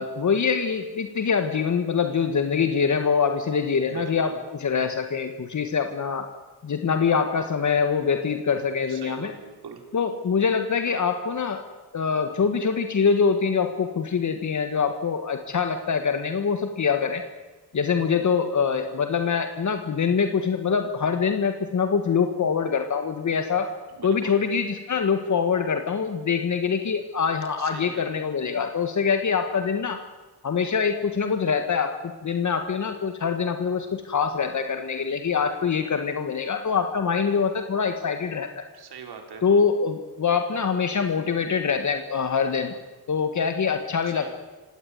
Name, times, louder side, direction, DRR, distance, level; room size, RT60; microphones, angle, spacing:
voice 1, 0.0-4.3 4.6-6.3 6.6-9.3 9.9-11.7 11.9-17.2 17.7-23.7 24.0-30.0 30.4-38.6 39.4-42.7 43.1-44.3, left 6 dB, 50° left, 7 dB, 1.7 m, -24 dB
voice 2, 3.9-4.4 8.9-9.8 24.0-24.4 27.6-28.1 38.7-39.5 44.0-44.3, right 7 dB, 80° right, 5 dB, 4.1 m, -41 dB
27.0 x 17.5 x 9.6 m, 1.3 s
wide cardioid pair, 125°, 38 cm